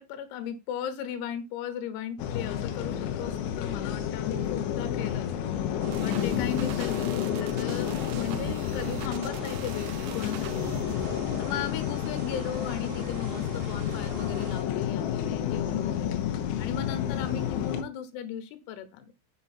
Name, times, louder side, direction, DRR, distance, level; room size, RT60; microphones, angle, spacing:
voice 1, 0.0-10.8 11.4-16.2 16.6-19.1, left 9 dB, 90° left, 10 dB, 3.9 m, -37 dB
sound 1, 2.2-17.8, left 10 dB, 75° left, 3.2 m, -30 dB
sound 2, 5.8-14.6, right 8 dB, 75° right, 3.4 m, -45 dB
sound 3, 5.9-11.2, right 13 dB, 90° right, 2.4 m, -42 dB
7.3 x 7.0 x 4.2 m, 0.26 s
omnidirectional pair, 6.0 m